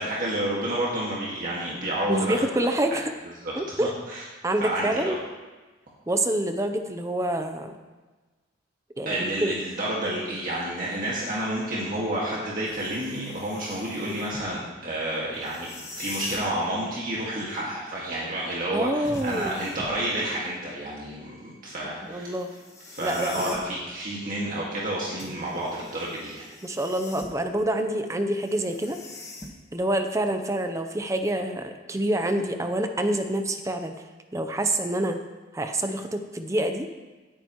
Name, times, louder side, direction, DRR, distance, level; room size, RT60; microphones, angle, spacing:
voice 1, 0.0-2.5 2.9-3.0 3.4-4.2 4.6-5.2 9.1-15.7 16.0-22.3 22.9-26.5, right 1 dB, 45° right, -5 dB, 1.9 m, -30 dB
voice 2, 2.1-3.1 3.6-3.9 4.4-5.2 6.1-7.8 9.0-9.5 18.7-19.6 22.0-22.5 23.0-23.5 26.6-29.0 29.7-33.9 34.3-35.2 35.5-36.9, right 1 dB, 15° right, 7 dB, 0.6 m, -27 dB
sound 1, 12.7-14.5 15.3-16.5 19.0-20.1 22.3-23.7 25.2-27.5 28.3-29.8, left 2 dB, 15° left, 1.4 m, -42 dB
18.0 x 10.0 x 3.1 m, 1.3 s
head